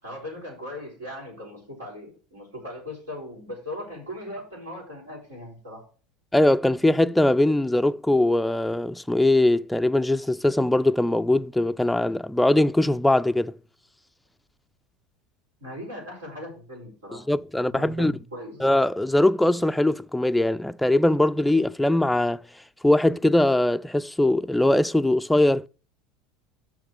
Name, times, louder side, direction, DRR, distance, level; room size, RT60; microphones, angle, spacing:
voice 1, 0.0-5.8 15.6-17.3 17.6-18.6, left 1 dB, 90° right, 5.4 m, -39 dB
voice 2, 6.3-13.6 17.1-18.1 18.6-22.4 22.8-25.7, left 1 dB, 5° left, 0.3 m, -21 dB
6.5 x 6.4 x 6.4 m
hypercardioid pair, 80°, 0 cm